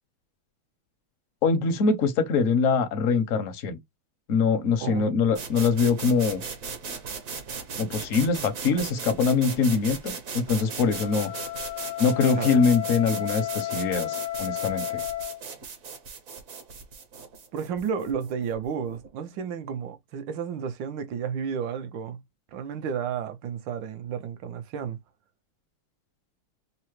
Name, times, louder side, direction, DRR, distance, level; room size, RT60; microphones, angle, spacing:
voice 1, 1.4-3.8 4.3-6.4 7.8-11.3 12.0-15.0, left 5 dB, 65° left, 0.8 m, -23 dB
voice 2, 4.8-5.2 12.3-12.6 17.5-22.2 22.5-25.0, right 7 dB, 75° right, 1.2 m, -32 dB
sound 1, 5.3-19.1, right 5 dB, 55° right, 1.0 m, -38 dB
Wind instrument woodwind instrument, 10.7-15.4, left 14 dB, 85° left, 1.5 m, -33 dB
5.5 x 2.0 x 3.1 m
omnidirectional pair, 2.4 m